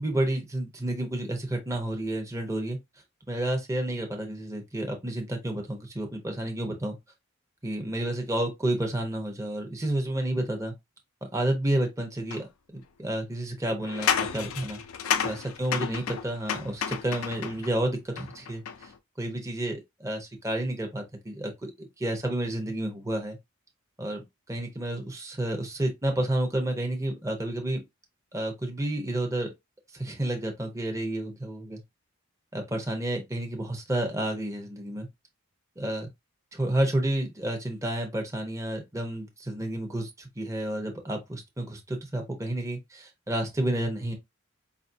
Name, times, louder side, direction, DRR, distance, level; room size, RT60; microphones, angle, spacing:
voice 1, 0.0-2.8 3.3-6.9 7.6-10.7 11.3-12.5 12.7-14.8 15.2-18.9 19.2-23.4 24.0-27.8 28.3-29.5 29.9-31.8 32.5-35.1 35.8-36.1 36.5-44.1, right 1 dB, 15° right, 0.8 m, -30 dB
sound 1, 12.3-12.4 13.8-17.7 18.2-18.9, left 8 dB, 80° left, 0.5 m, -31 dB
5.0 x 2.5 x 2.6 m
head